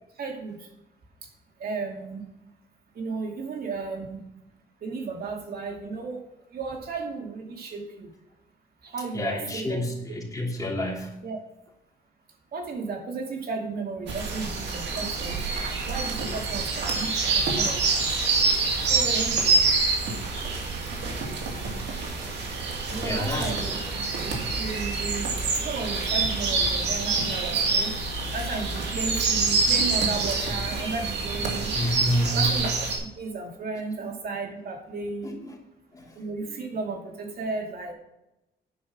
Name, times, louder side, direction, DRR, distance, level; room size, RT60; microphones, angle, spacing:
voice 1, 0.2-0.7 1.6-2.2 2.9-4.2 4.8-6.2 6.5-8.1 8.8-9.9 11.2-11.4 12.5-15.4 15.8-18.1 18.8-19.4 22.9-25.3 25.6-27.9 28.3-31.7 32.3-35.4 36.1-37.9, right 4 dB, 60° right, 1 dB, 2.5 m, -34 dB
voice 2, 9.1-11.2 22.2-22.3 22.9-23.5 30.2-30.3 31.7-32.5 35.2-35.4 35.9-36.2, left 1 dB, 20° left, -2 dB, 3.0 m, -29 dB
sound 1, 14.1-33.0, right 4 dB, 85° right, 2.3 m, -26 dB
10.5 x 5.6 x 6.0 m, 0.92 s
cardioid pair, 105°, 17 cm